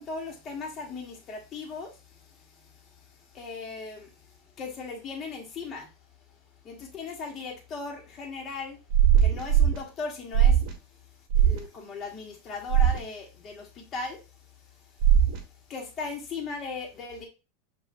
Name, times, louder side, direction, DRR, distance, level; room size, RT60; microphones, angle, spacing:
voice 1, 0.0-1.9 3.3-4.1 4.6-5.9 6.6-8.8 9.2-10.6 11.4-14.2 15.7-17.3, left 4 dB, 30° left, 1.5 m, -37 dB
sound 1, 8.9-9.8 10.3-10.7 11.3-11.6 12.7-13.0 15.0-15.4, right 9 dB, 50° right, 1.1 m, -19 dB
5.7 x 2.7 x 2.7 m
supercardioid pair, 125°, 0 cm